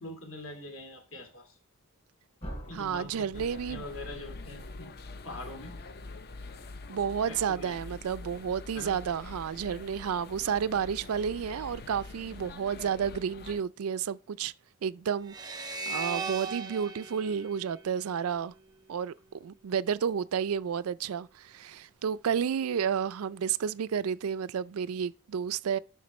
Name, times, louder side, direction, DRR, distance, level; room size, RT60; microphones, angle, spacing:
voice 1, 0.0-1.6 2.7-4.9 5.2-5.8 7.3-8.0 8.7-9.0, left 1 dB, 65° left, 2.5 m, -44 dB
sound 1, 2.4-7.2, equal, 30° left, 2.6 m, -48 dB
voice 2, 2.7-3.8 6.9-14.5 14.8-18.5 18.9-25.8, right 7 dB, 65° right, 0.4 m, -31 dB
sound 2, 3.3-13.6, left 3 dB, 45° left, 0.6 m, -45 dB
sound 3, 15.3-18.6, right 4 dB, 20° right, 0.6 m, -38 dB
10.5 x 5.7 x 3.1 m
head